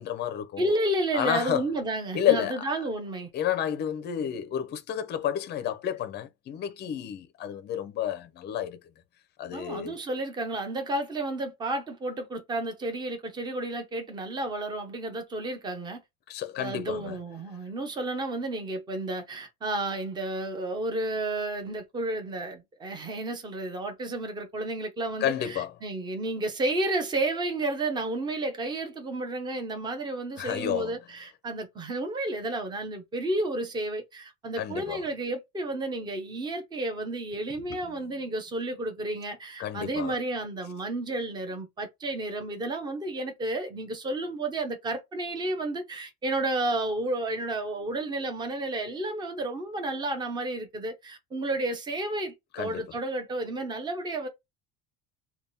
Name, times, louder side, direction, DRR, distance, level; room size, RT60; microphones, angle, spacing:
voice 1, 0.0-0.7 1.1-1.6 2.1-2.7 3.3-8.8 9.4-10.0 16.3-17.2 25.2-25.7 30.4-30.9 34.6-35.0 37.7-37.9 39.6-40.2 52.5-52.9, left 10 dB, 30° left, 0.6 m, -30 dB
voice 2, 0.6-3.3 9.5-16.0 16.6-54.3, right 2 dB, 15° right, 0.7 m, -31 dB
3.5 x 2.3 x 4.0 m
cardioid pair, 175°, 33 cm